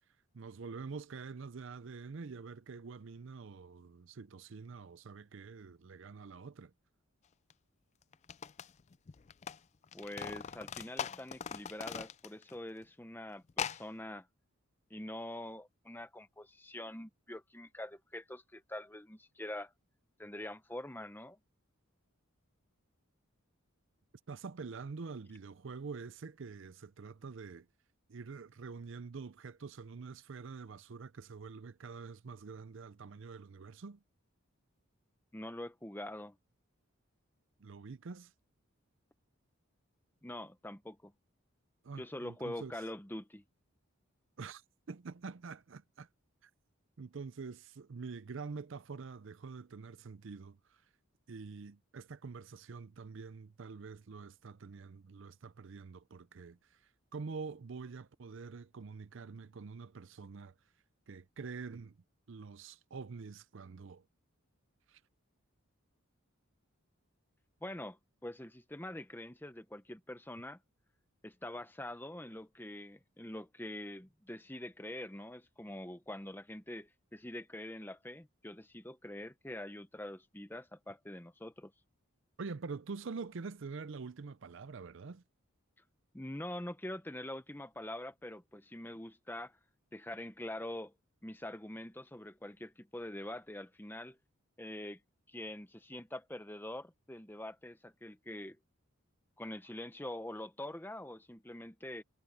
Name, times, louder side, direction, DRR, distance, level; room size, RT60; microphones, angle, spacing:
voice 1, 0.3-6.7 24.3-27.7 28.1-34.0 37.6-38.3 41.8-42.7 44.4-44.6 44.9-46.1 46.4-46.5 47.0-50.6 51.3-56.8 57.1-60.5 61.1-62.0 62.3-64.0 64.9-65.0 82.4-85.2, right 4 dB, 60° right, 0.5 m, -46 dB
sound 1, 7.5-7.6 8.1-9.6 9.8-12.6 12.8-12.9 13.5-13.8, left 7 dB, 30° left, 0.3 m, -40 dB
voice 2, 9.9-14.3 14.9-19.7 20.2-21.4 35.3-36.4 40.2-41.1 42.0-43.4 67.6-70.6 71.2-81.7 86.1-89.6 89.9-90.9 91.2-94.2 94.6-95.0 95.3-98.6 99.4-102.0, left 1 dB, 10° left, 0.9 m, -44 dB
head